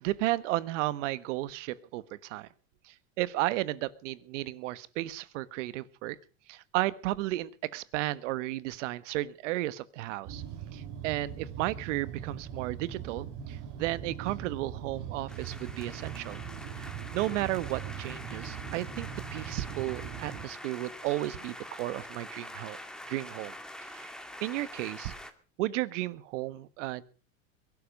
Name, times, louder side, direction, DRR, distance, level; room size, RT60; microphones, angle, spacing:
voice 1, 0.0-2.5 2.8-6.2 6.5-10.4 10.7-16.4 16.8-22.8 23.1-23.5 23.8-24.1 24.4-25.1 25.6-27.0, right 17 dB, 65° right, 16 dB, 1.4 m, -33 dB
sound 1, 10.2-20.4, right 8 dB, 50° right, 4.4 m, -41 dB
sound 2, 15.3-25.3, left 1 dB, ahead, 2.1 m, -45 dB
22.0 x 12.0 x 5.2 m, 0.38 s
supercardioid pair, 115°, 39 cm